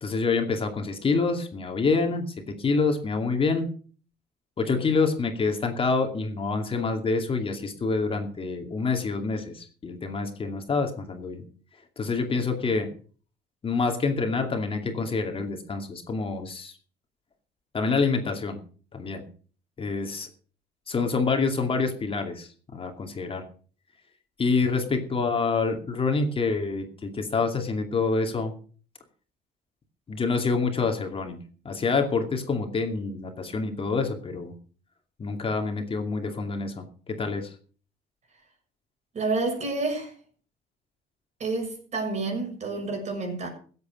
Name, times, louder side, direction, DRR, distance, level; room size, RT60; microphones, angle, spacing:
voice 1, 0.0-3.7 4.6-11.4 12.0-12.9 13.6-16.8 17.7-18.6 18.9-19.2 19.8-20.3 20.9-23.4 24.4-28.5 30.1-34.5 35.2-37.5, left 4 dB, 35° left, 2.5 m, -27 dB
voice 2, 39.1-40.1 41.4-43.5, right 3 dB, 40° right, 6.5 m, -29 dB
15.5 x 8.3 x 6.3 m
cardioid pair, 110°, 17 cm